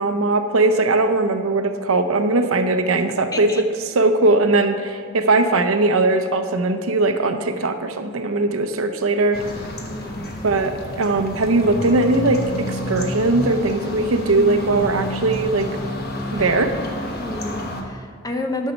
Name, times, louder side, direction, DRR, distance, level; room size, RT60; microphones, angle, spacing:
voice 1, 0.0-9.4 10.4-15.7 16.3-16.7, right 2 dB, 80° right, 7 dB, 0.7 m, -19 dB
voice 2, 3.3-3.6 9.8-10.4 16.4-16.5 16.8-18.7, left 2 dB, 15° left, 5 dB, 0.7 m, -31 dB
sound 1, 9.3-17.8, left 1 dB, 50° left, 1.1 m, -29 dB
9.9 x 6.5 x 5.2 m, 2.2 s
head